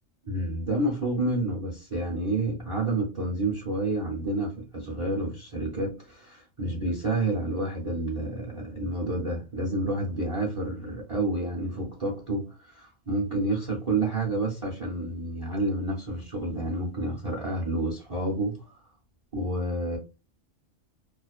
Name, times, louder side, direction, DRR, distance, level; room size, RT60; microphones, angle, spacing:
voice 1, 0.2-18.8 19.3-20.0, right 2 dB, 40° right, 0.5 m, -29 dB
2.4 x 2.2 x 2.3 m
omnidirectional pair, 1.4 m